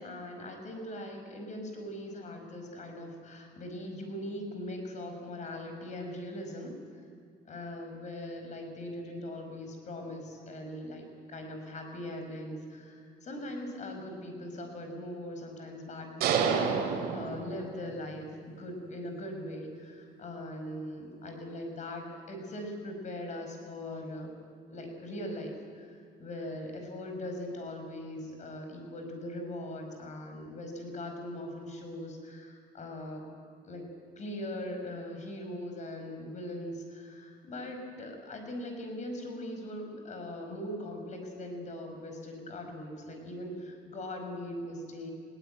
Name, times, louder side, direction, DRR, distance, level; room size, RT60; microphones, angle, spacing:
voice 1, 0.0-7.0 7.5-24.3 24.7-33.2 33.7-33.9 34.2-45.1, left 1 dB, 45° left, 4 dB, 5.3 m, -40 dB
sound 1, 16.2-18.0, right 6 dB, 70° right, 3.0 m, -29 dB
20.0 x 18.0 x 9.2 m, 2.3 s
cardioid pair, 110°, 17 cm